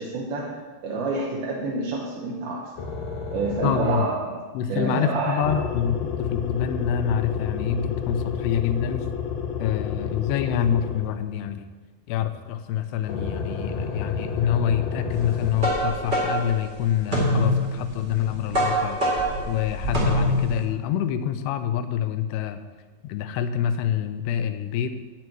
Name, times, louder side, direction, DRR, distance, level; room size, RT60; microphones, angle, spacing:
voice 1, 0.0-2.7 3.3-4.4 4.7-5.6, right 3 dB, 75° right, -3 dB, 2.8 m, -28 dB
sound 1, 2.8-4.2 5.4-11.2 13.0-15.5, left 6 dB, 60° left, 1.9 m, -30 dB
voice 2, 3.6-4.1 4.5-9.1 9.6-11.7 12.1-19.0 19.5-22.6 23.0-24.9, left 9 dB, 85° left, 9 dB, 2.6 m, -26 dB
sound 2, 15.2-20.6, equal, 40° right, 0.6 m, -25 dB
10.5 x 8.6 x 4.6 m, 1.3 s
omnidirectional pair, 4.8 m